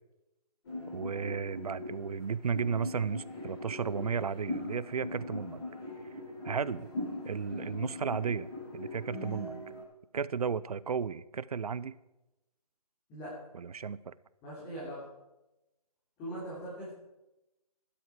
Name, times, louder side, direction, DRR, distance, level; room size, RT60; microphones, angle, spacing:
sound 1, 0.6-9.8, left 2 dB, 40° left, 6.2 m, -41 dB
voice 1, 0.9-5.7 6.4-6.9 7.2-8.5 8.7-9.6 10.1-12.0 13.5-14.1, right 6 dB, 65° right, 18 dB, 0.7 m, -34 dB
voice 2, 14.4-15.0 16.2-16.9, equal, 15° left, -8 dB, 3.2 m, -41 dB
16.0 x 12.0 x 4.7 m, 0.96 s
hypercardioid pair, 165°, 20 cm